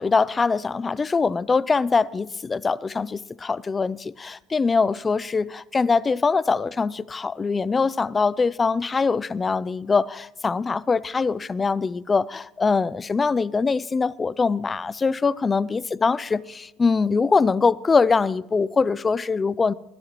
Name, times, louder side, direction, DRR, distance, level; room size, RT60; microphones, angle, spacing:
voice 1, 0.0-19.7, left 4 dB, 20° left, 0.4 m, -23 dB
21.5 x 12.5 x 3.0 m
cardioid pair, 140°, 0 cm